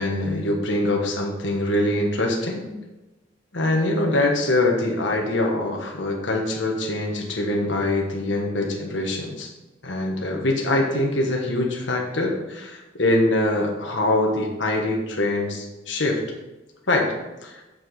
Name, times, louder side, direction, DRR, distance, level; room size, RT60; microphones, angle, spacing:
voice 1, 0.0-2.7 3.5-9.5 9.8-16.2 16.9-17.1 17.4-17.6, left 1 dB, 70° left, 1 dB, 1.3 m, -23 dB
6.8 x 6.4 x 5.6 m, 1.0 s
head